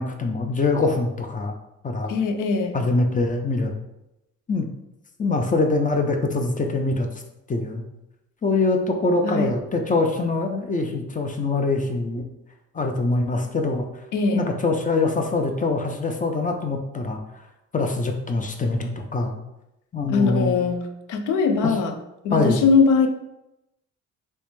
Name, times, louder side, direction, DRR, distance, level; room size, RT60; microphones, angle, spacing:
voice 1, 0.0-1.5 1.8-2.1 2.7-3.7 4.5-4.7 5.2-7.1 7.5-7.8 8.4-12.2 12.7-13.9 14.3-17.2 17.7-19.3 19.9-20.5 22.3-22.6, left 3 dB, 25° left, 4 dB, 0.5 m, -23 dB
voice 2, 2.1-2.8 9.2-9.5 14.1-14.5 20.1-21.9 22.2-23.1, left 4 dB, 90° left, 6 dB, 0.5 m, -21 dB
3.3 x 3.1 x 3.1 m, 0.89 s
cardioid pair, 90°, 30 cm